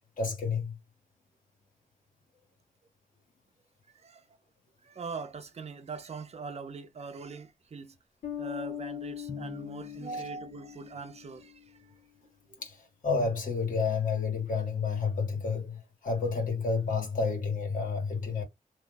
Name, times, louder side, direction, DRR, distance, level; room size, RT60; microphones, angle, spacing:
voice 1, 0.2-0.8 10.1-10.2 12.6-18.4, left 5 dB, 75° left, 1.7 m, -30 dB
voice 2, 3.9-4.2 4.8-8.0 8.4-11.8 12.5-12.6, right 4 dB, 50° right, 0.6 m, -42 dB
Bass guitar, 8.2-11.7, left 9 dB, 90° left, 1.1 m, -41 dB
Drum, 9.3-11.0, left 4 dB, 35° left, 0.6 m, -47 dB
2.9 x 2.3 x 3.9 m
wide cardioid pair, 160°, 14 cm